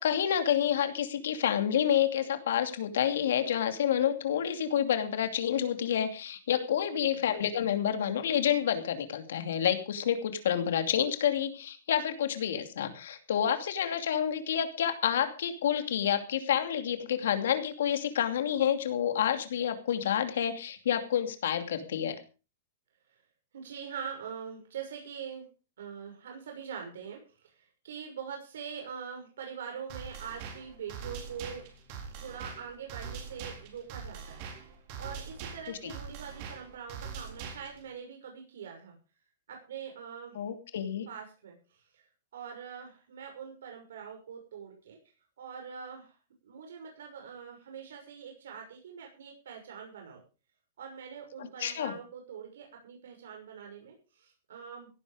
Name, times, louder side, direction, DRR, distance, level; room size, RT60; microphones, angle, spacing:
voice 1, 0.0-22.2 40.3-41.1 51.4-51.9, left 9 dB, 70° left, 8 dB, 2.6 m, -29 dB
voice 2, 23.5-25.4 25.8-31.6 32.2-34.6 35.0-39.0 39.5-40.4 41.1-42.0 42.3-45.0 45.4-46.2 46.4-50.2 50.8-54.9, right 7 dB, 80° right, 2 dB, 6.1 m, -43 dB
sound 1, 29.9-37.9, right 6 dB, 35° right, 4.1 m, -43 dB
17.0 x 11.5 x 5.1 m, 0.34 s
supercardioid pair, 175°, 0 cm